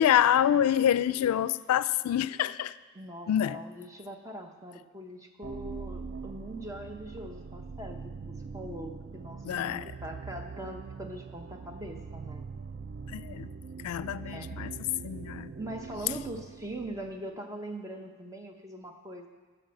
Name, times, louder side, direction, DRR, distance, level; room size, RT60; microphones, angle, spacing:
voice 1, 0.0-2.8 3.3-3.6 9.4-9.9 13.1-13.5 13.8-14.7 15.0-15.5, left 10 dB, 90° left, 16 dB, 0.3 m, -26 dB
voice 2, 2.9-12.5 14.1-14.5 15.6-19.3, right 1 dB, 15° right, 3 dB, 0.8 m, -42 dB
sound 1, 5.4-17.3, right 5 dB, 45° right, 0.3 m, -42 dB
13.0 x 4.4 x 7.8 m, 1.4 s
head